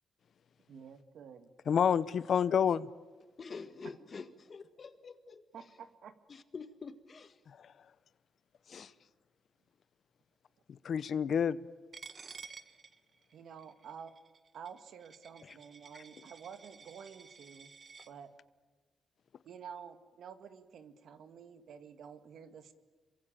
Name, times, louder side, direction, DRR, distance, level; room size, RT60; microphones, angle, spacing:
voice 1, 0.7-1.5 5.5-6.2 13.3-14.1 14.5-17.7 18.1-18.3 19.4-22.7, right 7 dB, 75° right, 2.0 m, -50 dB
voice 2, 1.7-2.9 7.5-7.7 8.7-8.9 10.7-11.6, left 7 dB, 60° left, 0.8 m, -29 dB
voice 3, 3.4-5.4 6.3-7.4 8.7-8.9 15.4-15.6 15.9-16.0, left 4 dB, 40° left, 1.8 m, -47 dB
Coin (dropping), 11.9-18.1, right 5 dB, 40° right, 1.4 m, -53 dB
27.5 x 24.0 x 8.9 m
cardioid pair, 115°, 0 cm